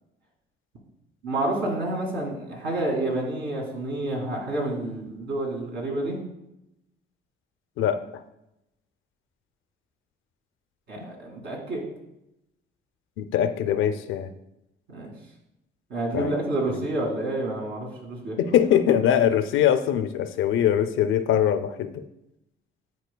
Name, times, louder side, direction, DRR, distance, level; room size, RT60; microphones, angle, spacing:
voice 1, 1.2-6.2 10.9-11.8 14.9-15.1 15.9-18.5, right 2 dB, 75° right, -1 dB, 2.2 m, -29 dB
voice 2, 13.2-14.3 16.1-16.3 16.7-16.8 18.4-22.0, left 9 dB, 85° left, 10 dB, 0.5 m, -22 dB
10.5 x 4.3 x 2.2 m, 0.87 s
cardioid pair, 90°, 20 cm